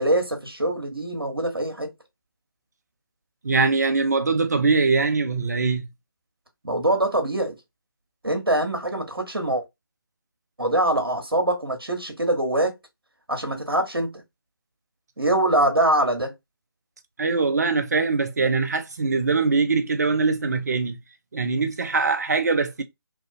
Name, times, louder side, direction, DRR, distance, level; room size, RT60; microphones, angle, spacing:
voice 1, 0.0-1.9 6.6-7.6 8.2-9.6 10.6-12.8 13.3-14.1 15.2-16.3, right 1 dB, 80° right, 1.1 m, -23 dB
voice 2, 3.4-5.8 17.2-21.0 21.3-22.8, right 4 dB, 45° right, 0.6 m, -22 dB
3.5 x 2.5 x 2.5 m
figure-of-eight pair, 155°, 12 cm